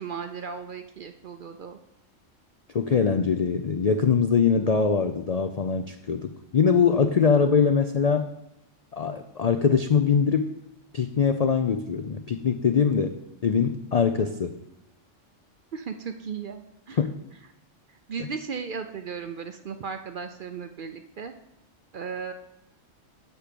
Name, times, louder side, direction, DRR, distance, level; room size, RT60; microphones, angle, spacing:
voice 1, 0.0-1.8 15.7-17.0 18.1-21.3 21.9-22.3, right 6 dB, 55° right, 8 dB, 0.6 m, -36 dB
voice 2, 2.7-8.3 8.9-10.5 10.9-14.6 17.0-17.1 18.2-18.3, left 6 dB, 60° left, 8 dB, 0.4 m, -23 dB
8.2 x 6.2 x 6.8 m, 0.83 s
omnidirectional pair, 1.3 m